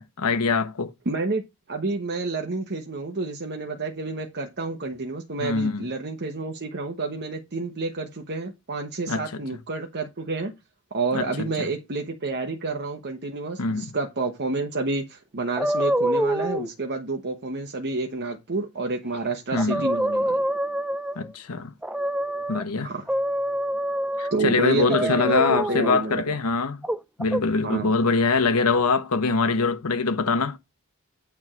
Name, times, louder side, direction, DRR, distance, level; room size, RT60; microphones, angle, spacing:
voice 1, 0.0-0.9 5.4-5.9 9.1-9.4 11.1-11.7 13.6-13.9 19.5-19.8 21.2-21.7 22.5-22.9 24.2-26.8 27.2-30.6, left 4 dB, 80° left, 1.1 m, -24 dB
voice 2, 1.1-1.4 1.7-10.5 10.9-20.4 22.8-23.1 24.3-26.2 27.6-27.9, right 3 dB, 50° right, 1.1 m, -29 dB
sound 1, 15.6-16.7 19.1-19.2 19.6-21.3 21.8-22.6 23.1-24.4 24.9-26.0 26.8-27.4, right 1 dB, 5° right, 0.4 m, -26 dB
8.9 x 3.6 x 6.1 m
head